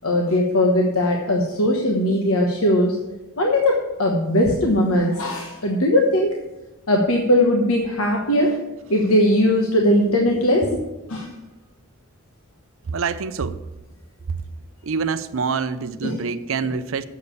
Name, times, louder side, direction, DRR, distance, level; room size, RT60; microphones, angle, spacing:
voice 1, 0.0-3.0 3.4-6.3 6.9-10.8 11.1-11.3 16.0-16.2 16.6-16.7, left 1 dB, 85° left, 1.3 m, -19 dB
voice 2, 12.9-13.6 14.3-14.4 14.8-17.1, right 5 dB, 70° right, 0.6 m, -26 dB
8.0 x 7.0 x 8.2 m
head